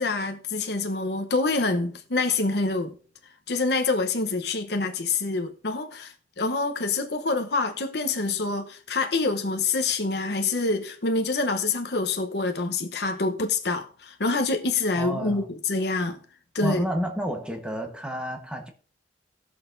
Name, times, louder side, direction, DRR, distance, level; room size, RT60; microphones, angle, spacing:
voice 1, 0.0-2.9 3.5-16.2 16.5-16.8, left 3 dB, 65° left, 1.0 m, -26 dB
voice 2, 15.0-15.5 16.6-18.7, equal, 5° right, 1.2 m, -30 dB
19.0 x 6.5 x 2.6 m
head